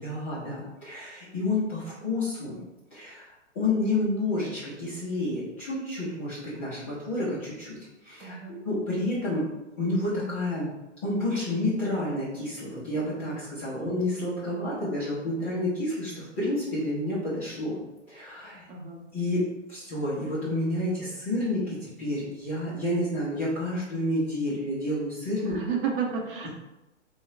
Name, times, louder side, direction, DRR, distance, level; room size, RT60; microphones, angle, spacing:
voice 1, 0.0-2.6 2.9-3.3 3.5-7.8 8.0-9.5 9.8-10.7 11.0-17.8 18.1-18.7 19.1-25.6, left 1 dB, 10° left, -12 dB, 0.3 m, -29 dB
voice 2, 8.2-8.6 18.7-19.0 25.4-26.5, right 6 dB, 45° right, 0 dB, 0.8 m, -31 dB
3.6 x 2.1 x 3.9 m, 1.0 s
figure-of-eight pair, 120°, 37 cm